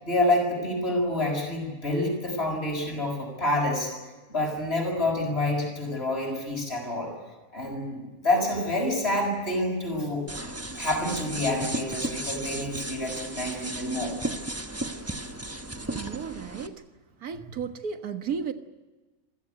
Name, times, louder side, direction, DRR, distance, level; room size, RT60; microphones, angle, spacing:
voice 1, 0.0-3.9 4.3-7.1 7.5-10.3 10.7-14.1, left 1 dB, 45° left, 1 dB, 6.5 m, -27 dB
sound 1, 10.3-16.7, right 1 dB, 10° right, 1.0 m, -35 dB
voice 2, 15.8-16.8 17.2-18.5, right 6 dB, 85° right, 8 dB, 1.9 m, -34 dB
27.0 x 15.5 x 9.7 m, 1.2 s
omnidirectional pair, 1.5 m